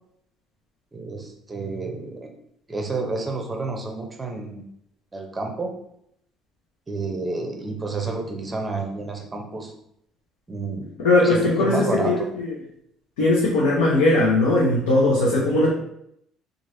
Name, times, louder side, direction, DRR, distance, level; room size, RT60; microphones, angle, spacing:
voice 1, 0.9-2.3 2.7-4.7 5.1-5.7 6.9-9.7 10.5-10.9 11.2-12.3, right 3 dB, 25° right, 3 dB, 0.7 m, -30 dB
voice 2, 11.0-12.5 13.2-15.7, left 2 dB, 85° left, -5 dB, 0.6 m, -19 dB
3.1 x 2.4 x 2.7 m, 0.74 s
supercardioid pair, 70°, 0 cm